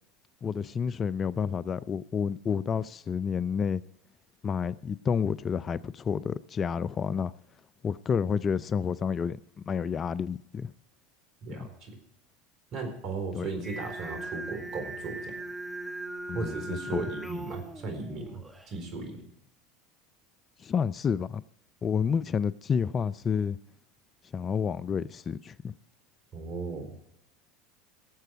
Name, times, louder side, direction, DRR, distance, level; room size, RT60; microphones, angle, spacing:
voice 1, 0.4-3.8 4.4-7.3 7.8-9.4 9.7-10.7 13.3-13.5 16.3-17.0 20.6-21.4 21.8-23.6 24.3-25.7, left 6 dB, 35° left, 0.4 m, -29 dB
voice 2, 11.4-11.9 12.7-15.3 16.3-19.3 26.3-26.9, right 3 dB, 50° right, 4.3 m, -36 dB
Singing, 13.6-18.7, right 2 dB, 5° right, 1.7 m, -39 dB
18.0 x 7.7 x 4.7 m
hypercardioid pair, 80°, 0 cm